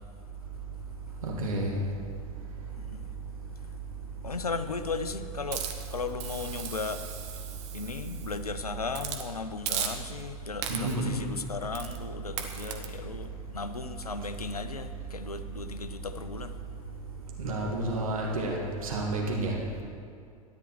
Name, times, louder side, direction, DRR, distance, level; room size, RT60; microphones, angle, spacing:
voice 1, 1.2-1.7 10.7-11.1 17.4-18.6 18.8-19.5, right 2 dB, 65° right, -2 dB, 2.2 m, -30 dB
voice 2, 4.2-7.0 7.7-16.5, left 4 dB, 80° left, 9 dB, 0.7 m, -36 dB
Hiss, 5.5-8.4 8.9-9.3 9.7-10.3 10.6-11.1 11.7-12.0 12.4-12.9, right 8 dB, 50° right, 1.2 m, -37 dB
13.5 x 10.5 x 4.6 m, 2.3 s
figure-of-eight pair, 90°, 19 cm